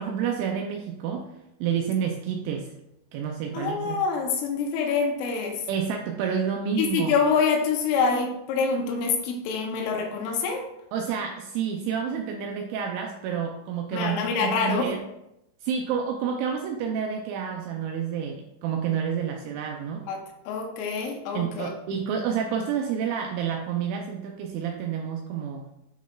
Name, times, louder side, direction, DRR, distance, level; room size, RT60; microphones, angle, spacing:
voice 1, 0.0-1.3 1.6-2.7 3.1-4.0 5.7-7.2 10.9-15.0 15.6-20.0 21.3-25.7, right 7 dB, 85° right, 2 dB, 2.7 m, -29 dB
voice 2, 3.5-5.7 6.8-10.7 13.9-14.9 20.1-20.2 20.5-21.7, left 5 dB, 80° left, 2 dB, 3.2 m, -26 dB
10.5 x 4.0 x 2.3 m, 0.85 s
omnidirectional pair, 5.9 m